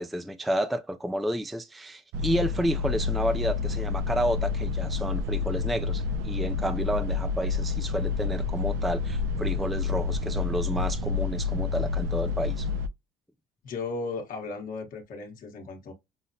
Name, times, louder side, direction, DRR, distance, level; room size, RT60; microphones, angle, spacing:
voice 1, 0.0-12.7, equal, ahead, 0.3 m, -30 dB
sound 1, 2.1-12.9, left 5 dB, 85° right, 0.4 m, -29 dB
voice 2, 13.6-15.9, left 3 dB, 55° left, 1.1 m, -35 dB
5.5 x 2.0 x 2.6 m
cardioid pair, 110°, 17 cm